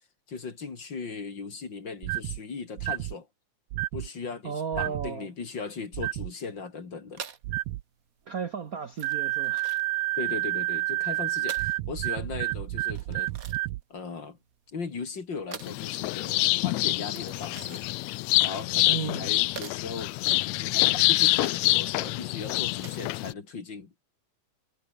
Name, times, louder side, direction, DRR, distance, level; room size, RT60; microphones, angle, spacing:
voice 1, 0.3-3.3 3.9-7.2 10.2-13.3 13.9-14.4 14.7-17.8 18.4-20.1 20.6-24.1, left 4 dB, 40° left, 3.2 m, -38 dB
sound 1, 2.0-2.4 2.8-3.1 3.7-4.1 4.7-5.1 5.9-6.3 7.4-7.8 9.0-13.8, right 18 dB, 85° right, 2.1 m, -30 dB
voice 2, 4.4-5.3 8.3-9.7 18.9-19.3, right 6 dB, 70° right, 0.8 m, -34 dB
sound 2, 7.1-23.2, right 7 dB, 45° right, 1.2 m, -47 dB
sound 3, 15.6-23.3, left 20 dB, 80° left, 1.6 m, -26 dB
omnidirectional pair, 3.4 m